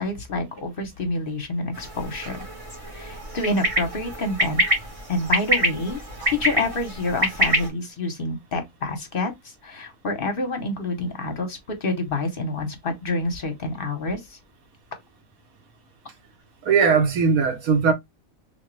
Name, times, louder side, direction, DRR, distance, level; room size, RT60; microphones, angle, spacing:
voice 1, 0.0-2.4 2.9-4.6 5.1-6.0 6.3-14.4, left 2 dB, 50° left, 0.9 m, -28 dB
sound 1, 1.7-7.7, equal, 25° right, 1.3 m, -26 dB
voice 2, 16.6-17.9, right 5 dB, 90° right, 1.4 m, -19 dB
3.4 x 2.8 x 3.1 m
omnidirectional pair, 1.4 m